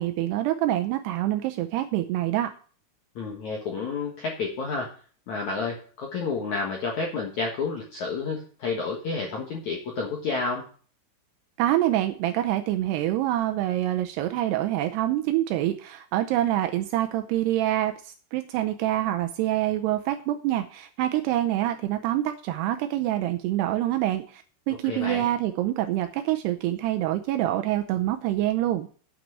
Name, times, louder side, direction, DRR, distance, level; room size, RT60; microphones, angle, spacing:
voice 1, 0.0-2.5 11.6-28.9, right 13 dB, 85° right, 7 dB, 2.4 m, -26 dB
voice 2, 3.2-4.9 5.3-10.7 24.8-25.3, left 4 dB, 65° left, 0 dB, 1.9 m, -30 dB
9.4 x 6.1 x 7.3 m, 0.41 s
omnidirectional pair, 5.5 m